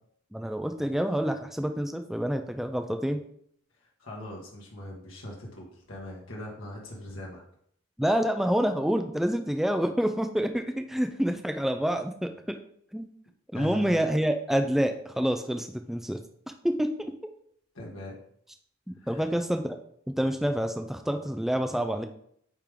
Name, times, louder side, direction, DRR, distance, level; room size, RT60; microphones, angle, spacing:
voice 1, 0.3-3.2 8.0-12.6 12.9-13.1 13.5-16.2 16.6-17.1 18.9-19.8 20.2-22.0, equal, ahead, 6 dB, 0.3 m, -27 dB
voice 2, 3.7-7.4 13.5-14.2 17.7-18.2 19.0-19.3, left 1 dB, 85° left, -3 dB, 1.7 m, -41 dB
9.0 x 3.6 x 3.7 m, 0.66 s
head